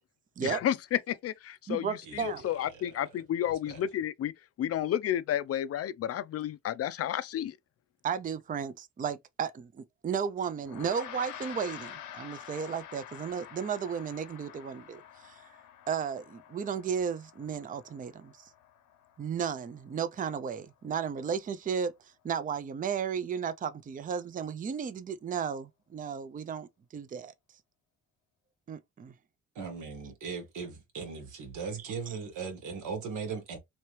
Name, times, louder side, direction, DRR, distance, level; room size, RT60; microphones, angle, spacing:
voice 1, 0.4-4.3 4.6-7.6, left 11 dB, 50° left, 0.4 m, -31 dB
voice 2, 1.7-2.4 8.0-15.4 15.9-18.5 19.2-21.9 22.2-27.3 28.7-29.1 31.8-32.2, right 7 dB, 30° right, 0.4 m, -34 dB
voice 3, 2.7-3.0 3.7-3.8 29.5-33.6, right 5 dB, 85° right, 1.3 m, -38 dB
Gong, 10.6-20.2, left 10 dB, 85° left, 0.9 m, -48 dB
3.0 x 2.8 x 3.1 m
cardioid pair, 90°, 30 cm